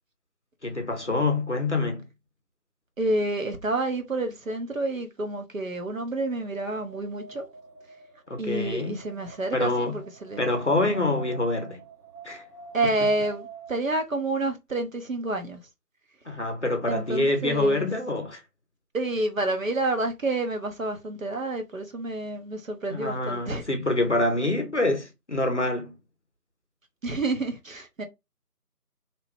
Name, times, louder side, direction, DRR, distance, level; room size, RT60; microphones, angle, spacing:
voice 1, 0.6-2.0 8.3-9.0 9.5-10.0 10.4-11.8 12.2-12.4 13.0-13.1 16.3-18.4 22.9-25.9, left 2 dB, 50° left, 0.6 m, -26 dB
voice 2, 3.0-7.4 8.4-10.4 12.7-15.6 16.9-17.9 18.9-23.6 27.0-28.0, right 2 dB, 55° right, 0.8 m, -29 dB
Wind, 6.1-14.0, right 4 dB, 90° right, 1.3 m, -48 dB
2.8 x 2.2 x 2.9 m
figure-of-eight pair, 165°, 47 cm